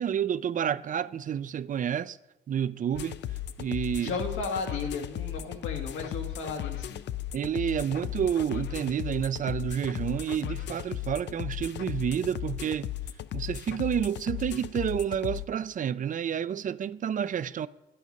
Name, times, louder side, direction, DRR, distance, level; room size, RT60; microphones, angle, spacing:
voice 1, 0.0-2.2 2.5-3.2 3.6-4.1 7.3-12.9 13.3-17.7, right 9 dB, 40° right, 0.4 m, -29 dB
sound 1, 2.9-15.5, left 12 dB, 65° left, 0.5 m, -36 dB
voice 2, 4.0-7.0, left 4 dB, 90° left, 1.7 m, -34 dB
11.0 x 8.7 x 5.3 m
cardioid pair, 90°, 20 cm